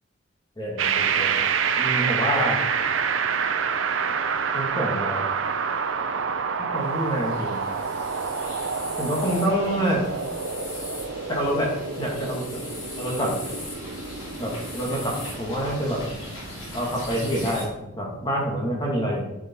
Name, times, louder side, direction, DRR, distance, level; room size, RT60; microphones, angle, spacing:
voice 1, 0.6-1.3 1.8-2.6 4.5-5.3 6.6-7.6 9.0-10.0 11.3-11.7 12.0-12.6 13.0-13.4 14.4-16.0 16.7-17.7 18.0-19.3, equal, 20° left, -2 dB, 2.1 m, -27 dB
sound 1, 0.8-18.7, right 6 dB, 85° right, 0.6 m, -28 dB
sound 2, 6.8-17.7, left 1 dB, 75° left, 3.4 m, -39 dB
7.2 x 6.9 x 4.6 m, 0.94 s
head